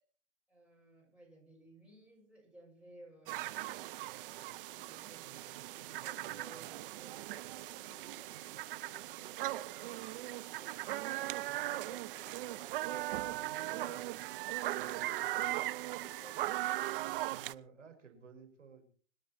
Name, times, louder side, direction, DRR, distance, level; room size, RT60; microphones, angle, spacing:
voice 1, 0.5-3.5 4.6-14.0, right 1 dB, 5° right, -2 dB, 7.3 m, -59 dB
sound 1, 3.3-17.5, right 16 dB, 50° right, 0.7 m, -39 dB
voice 2, 13.4-14.0 16.9-18.9, right 6 dB, 90° right, 5 dB, 5.5 m, -55 dB
25.5 x 10.5 x 4.3 m, 0.42 s
hypercardioid pair, 125°, 36 cm